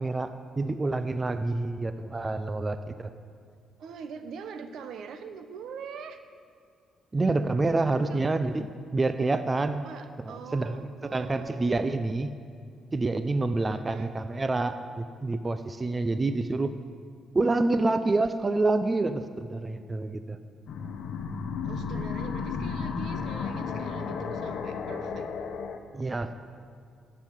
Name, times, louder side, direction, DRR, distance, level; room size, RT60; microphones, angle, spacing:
voice 1, 0.0-3.1 7.1-9.9 10.2-12.3 12.9-16.7 17.3-20.4 25.9-26.3, right 2 dB, 25° right, 10 dB, 0.5 m, -27 dB
voice 2, 3.8-6.2 8.0-8.2 9.8-11.8 13.7-14.1 21.6-25.3, right 6 dB, 75° right, 8 dB, 1.0 m, -43 dB
sound 1, 20.7-25.8, left 5 dB, 70° left, 1.0 m, -33 dB
11.5 x 7.5 x 8.3 m, 2.3 s
cardioid pair, 90°, 0 cm